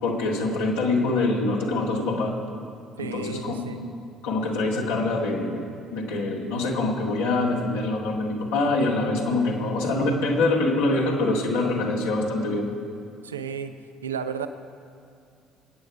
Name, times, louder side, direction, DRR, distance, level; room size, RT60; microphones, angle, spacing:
voice 1, 0.0-2.3 3.0-3.6 4.2-5.6 5.9-12.7, left 2 dB, 70° left, -2 dB, 2.2 m, -24 dB
voice 2, 3.0-3.8 13.2-13.7 14.0-14.5, right 7 dB, 80° right, 9 dB, 0.6 m, -32 dB
24.0 x 9.2 x 4.9 m, 2.4 s
figure-of-eight pair, 50°, 0 cm